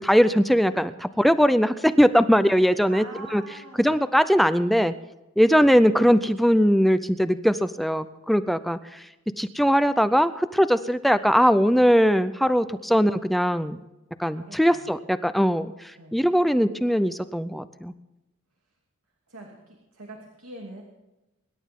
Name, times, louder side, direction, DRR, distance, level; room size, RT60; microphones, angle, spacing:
voice 1, 0.0-3.0 3.3-3.4 3.8-4.9 5.4-9.0 9.4-13.8 14.2-17.9, equal, ahead, 12 dB, 0.4 m, -20 dB
voice 2, 2.9-3.9 14.4-14.9 15.9-16.2 19.3-20.8, right 2 dB, 80° right, 0 dB, 2.8 m, -43 dB
25.0 x 11.5 x 3.7 m, 0.99 s
head